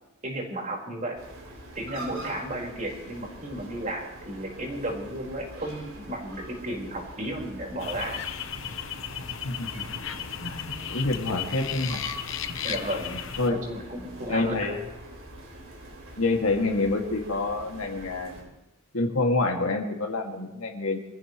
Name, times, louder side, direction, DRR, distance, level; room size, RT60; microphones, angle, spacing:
voice 1, 0.2-1.2 1.7-8.2 12.6-13.2 13.5-14.8, right 1 dB, 35° right, -1 dB, 4.7 m, -34 dB
sound 1, 1.2-18.4, right 1 dB, 75° right, 4.7 m, -44 dB
sound 2, 7.8-13.5, left 8 dB, 65° left, 1.0 m, -35 dB
voice 2, 9.4-9.8 10.4-12.0 13.4-13.6 14.2-14.8 16.2-18.5 18.9-21.0, left 2 dB, 80° left, 2 dB, 2.3 m, -27 dB
26.0 x 15.0 x 3.2 m, 0.96 s
head